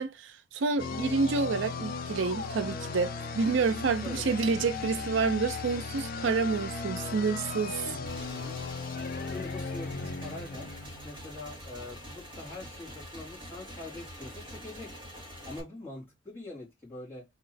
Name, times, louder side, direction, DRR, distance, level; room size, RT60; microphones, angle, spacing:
voice 1, 0.0-7.9, right 4 dB, 65° right, 0.4 m, -29 dB
sound 1, 0.8-11.4, left 4 dB, 45° left, 0.5 m, -37 dB
voice 2, 4.0-4.6 7.9-8.6 9.3-10.7 11.0-14.9 15.4-17.2, left 2 dB, 10° left, 1.9 m, -44 dB
Motorcycle / Engine, 8.1-15.6, equal, 25° right, 1.5 m, -45 dB
sound 2, 9.9-16.1, right 6 dB, 5° right, 0.7 m, -58 dB
3.0 x 2.7 x 4.1 m
head